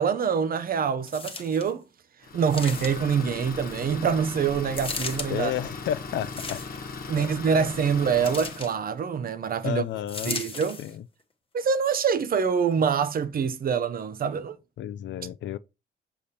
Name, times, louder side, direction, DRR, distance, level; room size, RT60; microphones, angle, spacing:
voice 1, 0.0-1.8 2.3-5.5 7.1-9.8 10.2-10.8 11.5-14.6, right 6 dB, 45° right, 0.6 m, -25 dB
sound 1, 1.1-1.7 2.5-3.2 4.7-5.3 6.2-6.9 8.2-8.7 10.1-10.9 11.6-11.7, left 4 dB, 25° left, 1.0 m, -36 dB
Idling, 2.2-8.8, left 4 dB, 45° left, 1.2 m, -38 dB
voice 2, 5.3-6.6 7.2-7.3 9.6-10.4 10.8-11.0 14.8-15.6, left 11 dB, 65° left, 0.4 m, -31 dB
6.7 x 5.1 x 2.8 m
cardioid pair, 115°, 21 cm